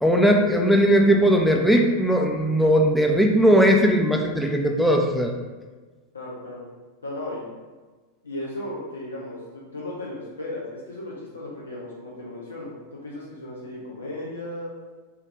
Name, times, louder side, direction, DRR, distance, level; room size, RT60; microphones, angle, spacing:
voice 1, 0.0-5.3, equal, ahead, 1 dB, 0.4 m, -18 dB
voice 2, 6.1-6.7 7.0-7.5 8.2-14.7, left 1 dB, 75° left, -5 dB, 0.5 m, -35 dB
3.4 x 2.3 x 3.1 m, 1.3 s
figure-of-eight pair, 90°, 0 cm